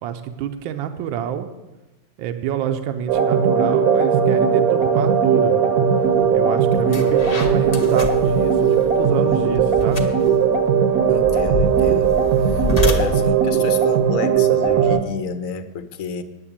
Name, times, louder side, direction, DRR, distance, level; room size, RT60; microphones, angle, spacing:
voice 1, 0.0-1.5 2.2-5.8 6.3-10.1, right 9 dB, 75° right, 7 dB, 1.4 m, -27 dB
sound 1, 3.1-15.0, right 7 dB, 55° right, 1.1 m, -18 dB
sound 2, 6.2-6.3 6.7-15.0, left 3 dB, 45° left, 0.5 m, -28 dB
voice 2, 11.1-12.2 12.5-16.2, left 6 dB, 60° left, 10 dB, 0.8 m, -30 dB
9.9 x 6.8 x 8.5 m, 1.1 s
omnidirectional pair, 2.2 m